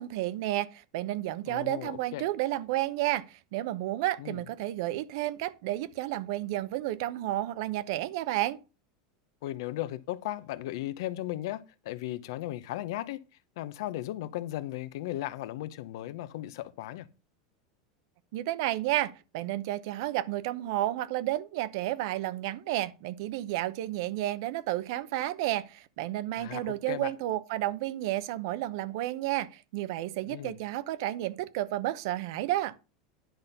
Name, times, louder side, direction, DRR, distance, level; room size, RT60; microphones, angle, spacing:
voice 1, 0.0-8.6 18.3-32.7, right 15 dB, 65° right, 0.7 m, -31 dB
voice 2, 1.5-2.3 4.2-4.4 9.4-13.2 13.6-17.1 26.4-27.1 30.3-30.6, left 14 dB, 75° left, 0.8 m, -36 dB
10.5 x 4.2 x 6.7 m
supercardioid pair, 115°, 2 cm